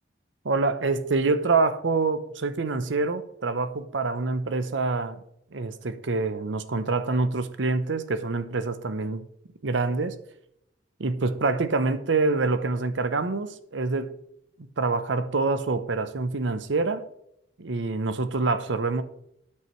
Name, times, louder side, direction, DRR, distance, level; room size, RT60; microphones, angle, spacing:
voice 1, 0.4-5.2 5.5-9.3 9.6-10.2 11.0-14.1 14.8-17.0 17.6-19.0, right 3 dB, 85° right, 12 dB, 0.8 m, -26 dB
12.5 x 8.6 x 3.1 m, 0.75 s
head